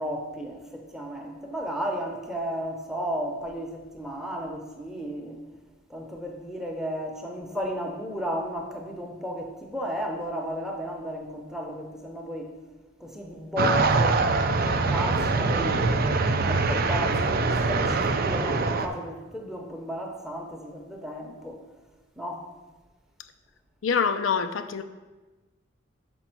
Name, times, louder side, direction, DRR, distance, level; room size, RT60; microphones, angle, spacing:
voice 1, 0.0-5.4 5.9-12.5 13.0-14.2 14.5-15.9 16.4-21.6 22.2-22.4, equal, ahead, 2 dB, 0.8 m, -33 dB
sound 1, 13.6-18.9, right 3 dB, 50° right, 0.5 m, -23 dB
voice 2, 23.8-24.8, left 6 dB, 75° left, 9 dB, 0.4 m, -25 dB
5.9 x 5.3 x 5.9 m, 1.2 s
head